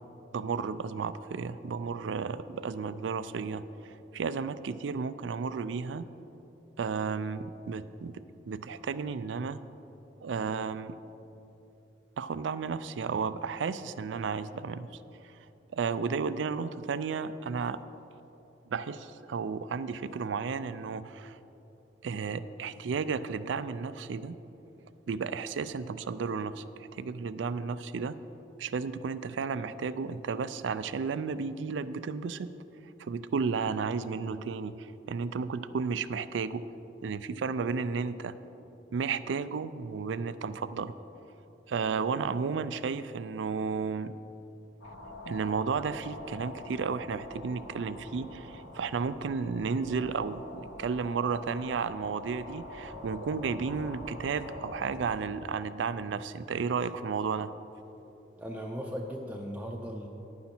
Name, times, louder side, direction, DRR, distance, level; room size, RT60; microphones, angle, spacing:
voice 1, 0.3-6.1 6.8-9.6 10.2-10.9 12.2-14.9 15.7-17.8 18.7-21.4 22.0-24.4 25.1-26.6 27.0-28.2 28.6-32.5 33.0-36.6 37.0-38.3 38.9-40.9 41.7-44.1 45.2-57.5, right 5 dB, 80° right, 14 dB, 0.4 m, -33 dB
sound 1, 44.8-55.1, left 1 dB, 70° left, 1.3 m, -45 dB
voice 2, 58.4-60.1, equal, 10° right, 0 dB, 0.6 m, -37 dB
10.5 x 9.5 x 4.4 m, 2.9 s
head